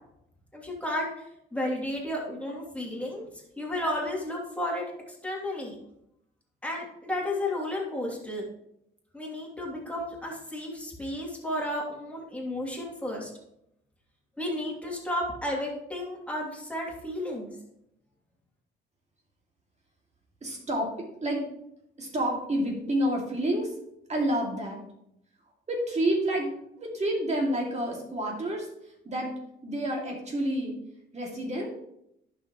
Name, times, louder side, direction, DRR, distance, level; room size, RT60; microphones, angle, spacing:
voice 1, 0.5-1.1 1.5-3.2 3.6-5.8 6.6-8.4 9.1-13.3 14.4-17.5, left 1 dB, 5° left, -2 dB, 2.7 m, -32 dB
voice 2, 20.4-20.9 21.2-21.4 22.0-23.8 24.1-24.8 25.7-26.5 26.8-28.7 29.0-29.3 29.6-30.8 31.1-31.7, right 1 dB, 35° right, 0 dB, 2.4 m, -29 dB
11.0 x 6.2 x 3.0 m, 0.78 s
cardioid pair, 90°, 20 cm